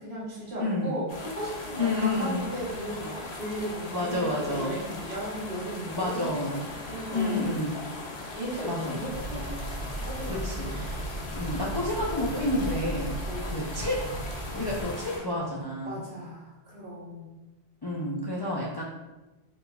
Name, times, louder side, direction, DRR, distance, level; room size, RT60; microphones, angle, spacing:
voice 1, 0.0-6.5 6.9-7.5 8.3-9.7 10.0-10.7 11.0-11.1 12.8-13.0 13.2-13.5 15.8-17.3, right 1 dB, 85° right, -7 dB, 1.4 m, -36 dB
voice 2, 0.6-1.0 1.8-2.5 3.9-4.7 5.9-6.7 7.1-7.8 8.6-9.0 10.2-11.0 11.3-13.1 13.4-14.0 14.5-16.0 17.8-18.8, left 2 dB, 45° left, -4 dB, 0.3 m, -30 dB
sound 1, 1.1-15.2, left 2 dB, 85° left, 1.0 m, -39 dB
sound 2, 9.1-14.8, right 2 dB, 50° right, 0.8 m, -36 dB
4.9 x 2.3 x 2.3 m, 1.1 s
omnidirectional pair, 1.1 m